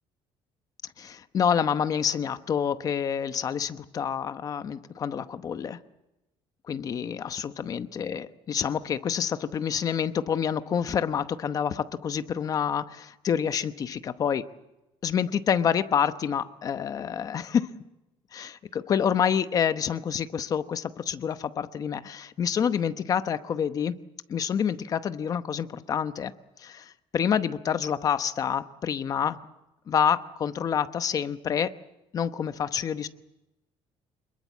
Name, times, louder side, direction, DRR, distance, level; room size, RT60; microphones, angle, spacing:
voice 1, 1.0-5.8 6.7-14.5 15.0-17.7 18.3-24.0 24.3-26.3 26.6-29.4 29.9-31.7 32.1-33.1, left 8 dB, 35° left, 11 dB, 0.9 m, -28 dB
27.0 x 21.5 x 7.3 m, 0.98 s
cardioid pair, 175°, 11 cm